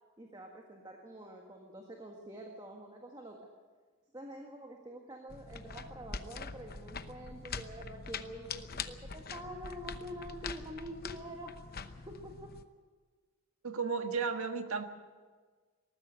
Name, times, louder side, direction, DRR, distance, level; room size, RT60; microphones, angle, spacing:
voice 1, 0.2-3.5 4.1-12.6, right 1 dB, 20° right, 1 dB, 1.7 m, -47 dB
sound 1, 5.3-12.6, left 5 dB, 45° left, 0.9 m, -44 dB
voice 2, 13.6-14.8, right 5 dB, 75° right, 7 dB, 1.6 m, -33 dB
19.5 x 14.5 x 9.3 m, 1.4 s
head